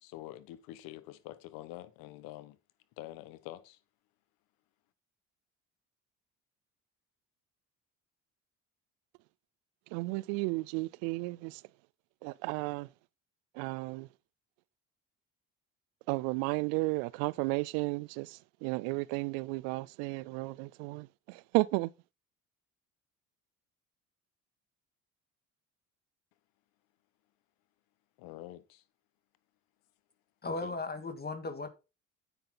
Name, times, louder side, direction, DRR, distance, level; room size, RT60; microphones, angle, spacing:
voice 1, 0.0-2.6 3.0-3.8 28.2-28.8 30.6-30.8, left 15 dB, 80° left, 1.3 m, -46 dB
voice 2, 9.9-11.6 12.2-12.9 13.6-14.1 16.1-21.9, right 24 dB, 85° right, 0.5 m, -33 dB
voice 3, 30.4-31.7, left 3 dB, 25° left, 2.1 m, -36 dB
9.2 x 9.0 x 3.9 m
supercardioid pair, 70°, 35 cm